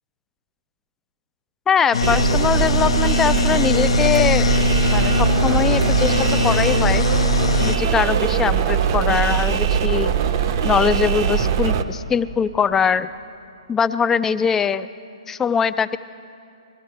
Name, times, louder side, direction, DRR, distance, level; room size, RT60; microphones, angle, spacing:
voice 1, 1.7-4.5 4.9-7.0 7.6-10.2 10.6-13.1 13.7-14.9 15.3-16.0, left 6 dB, 10° left, 14 dB, 0.3 m, -21 dB
sound 1, 1.9-7.8, left 6 dB, 65° left, 0.5 m, -22 dB
sound 2, 2.0-11.8, right 8 dB, 40° right, 0.7 m, -21 dB
20.0 x 13.5 x 4.6 m, 2.5 s
figure-of-eight pair, 130°, 3 cm